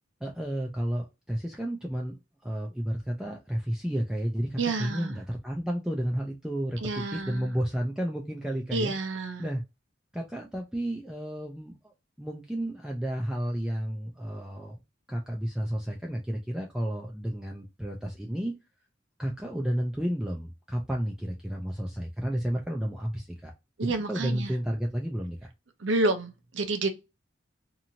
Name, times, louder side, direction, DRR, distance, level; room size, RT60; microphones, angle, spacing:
voice 1, 0.2-2.2 2.4-8.9 9.4-9.6 10.1-14.8 15.1-18.5 19.2-23.5 23.8-25.4, equal, 5° right, 0.4 m, -32 dB
voice 2, 4.6-5.2 6.8-7.5 8.7-9.5 23.8-24.5 25.8-26.9, right 2 dB, 75° right, 0.7 m, -29 dB
2.9 x 2.6 x 2.6 m
head